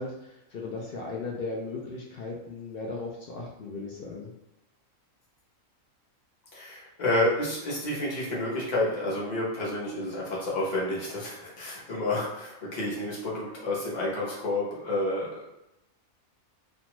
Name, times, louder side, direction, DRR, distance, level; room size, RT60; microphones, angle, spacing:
voice 1, 0.0-4.3, left 3 dB, 65° left, -2 dB, 0.5 m, -37 dB
voice 2, 6.5-15.5, left 1 dB, 40° left, -6 dB, 0.8 m, -30 dB
2.5 x 2.2 x 2.9 m, 0.91 s
omnidirectional pair, 1.4 m